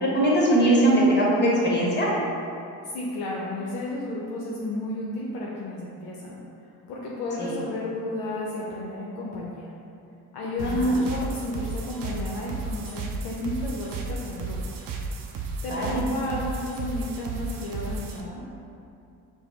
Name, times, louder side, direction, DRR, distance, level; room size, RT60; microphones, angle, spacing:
voice 1, 0.0-2.1 7.4-7.5 10.9-11.0 15.7-16.0, right 1 dB, 25° left, -5 dB, 1.2 m, -21 dB
voice 2, 2.8-6.4 6.9-9.7 10.3-14.8 15.6-18.4, left 1 dB, 60° left, -4 dB, 0.6 m, -32 dB
sound 1, 10.6-18.2, right 3 dB, 50° right, 0.5 m, -33 dB
4.7 x 2.1 x 3.0 m, 2.6 s
hypercardioid pair, 50°, 44 cm